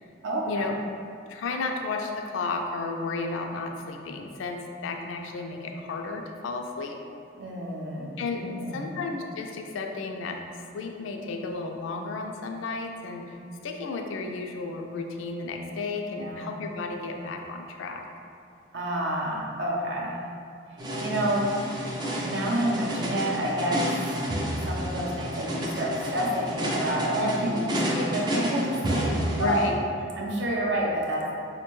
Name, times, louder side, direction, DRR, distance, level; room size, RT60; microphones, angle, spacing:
voice 1, 0.2-0.8 7.4-8.9 16.1-16.5 18.7-20.2 20.7-21.5 22.2-24.2 24.7-29.6 30.2-31.3, right 1 dB, 65° right, -3 dB, 0.6 m, -29 dB
voice 2, 1.3-7.0 8.2-8.4 8.7-10.4 10.7-13.4 13.6-18.0 27.2-27.7 29.3-29.9, left 3 dB, 80° left, 3 dB, 0.3 m, -33 dB
sound 1, 20.8-29.7, equal, 20° right, 0.3 m, -30 dB
4.2 x 2.2 x 3.0 m, 2.5 s
head